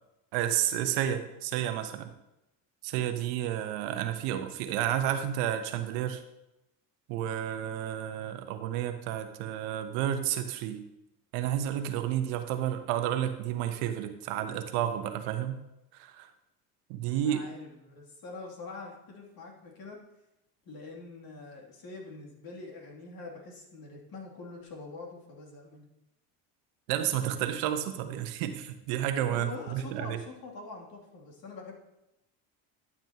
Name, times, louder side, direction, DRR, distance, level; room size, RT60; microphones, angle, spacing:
voice 1, 0.3-2.1 2.8-6.2 7.1-10.8 11.3-15.6 15.9-16.3 16.9-17.4 26.9-30.2, right 11 dB, 80° right, 8 dB, 1.0 m, -31 dB
voice 2, 17.2-20.0 20.6-25.9 29.3-31.7, left 3 dB, 55° left, -1 dB, 2.9 m, -44 dB
12.0 x 7.3 x 2.9 m, 0.90 s
supercardioid pair, 75°, 43 cm